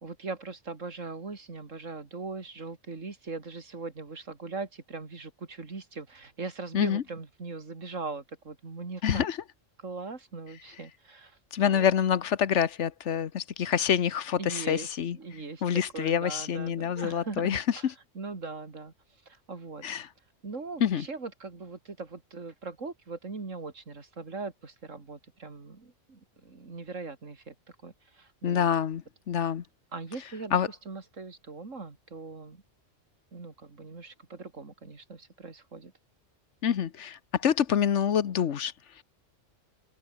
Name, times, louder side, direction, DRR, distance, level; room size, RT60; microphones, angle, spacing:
voice 1, 0.0-9.3 9.8-11.9 14.4-14.9 15.1-17.8 18.1-18.9 19.3-19.9 20.4-27.5 27.8-28.7 29.9-32.6 33.3-35.9, right 4 dB, 90° right, 3.2 m, -40 dB
voice 2, 9.0-9.4 11.5-15.2 15.6-17.9 19.8-20.1 20.8-21.1 28.4-29.6 30.5-30.7 36.6-39.0, left 8 dB, 70° left, 1.3 m, -27 dB
omnidirectional pair, 1.3 m